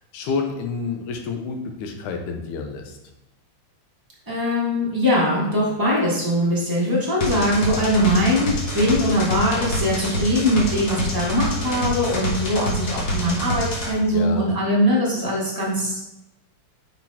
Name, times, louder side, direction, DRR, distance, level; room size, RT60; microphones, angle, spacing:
voice 1, 0.0-3.0 14.1-14.5, left 5 dB, 90° left, 4 dB, 2.3 m, -29 dB
voice 2, 4.3-16.0, equal, 20° right, -7 dB, 0.5 m, -21 dB
sound 1, 7.2-13.9, equal, 70° left, 0.9 m, -26 dB
6.4 x 4.1 x 4.2 m, 0.90 s
omnidirectional pair, 3.4 m